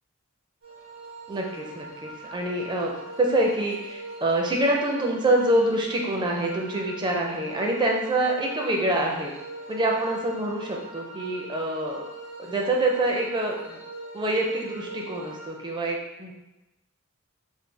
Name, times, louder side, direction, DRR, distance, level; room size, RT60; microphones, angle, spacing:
sound 1, 0.6-15.5, right 2 dB, 70° right, 1.2 m, -41 dB
voice 1, 1.3-9.3 9.7-12.0 12.4-13.8 14.1-16.3, right 1 dB, 20° right, 0 dB, 0.5 m, -26 dB
3.4 x 2.2 x 3.3 m, 0.98 s
head